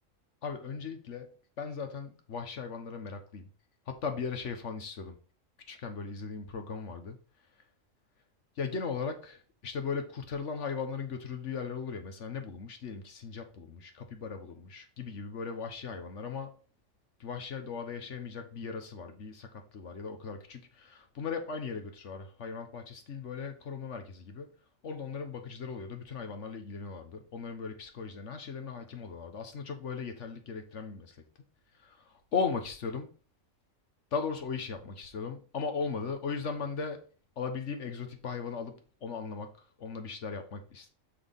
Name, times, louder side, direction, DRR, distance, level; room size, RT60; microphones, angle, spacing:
voice 1, 0.4-1.3 1.6-3.5 3.9-5.2 5.7-7.2 8.6-16.6 17.2-24.5 24.8-31.2 31.8-33.1 34.1-37.0 37.4-39.5 39.8-40.9, left 5 dB, 65° left, 1.4 m, -37 dB
6.4 x 5.8 x 3.6 m
omnidirectional pair, 1.4 m